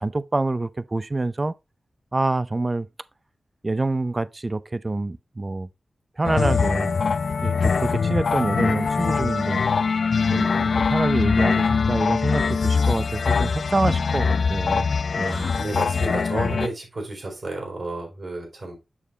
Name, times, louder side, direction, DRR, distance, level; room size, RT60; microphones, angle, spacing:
voice 1, 0.0-1.5 2.1-2.9 3.6-5.7 6.2-6.9 7.4-9.6 10.3-15.5, right 2 dB, 30° right, 0.5 m, -26 dB
sound 1, 6.2-16.7, left 5 dB, 70° left, 0.4 m, -22 dB
voice 2, 15.2-18.8, right 2 dB, 55° right, 4.5 m, -31 dB
7.2 x 6.5 x 2.8 m
wide cardioid pair, 70°, 0 cm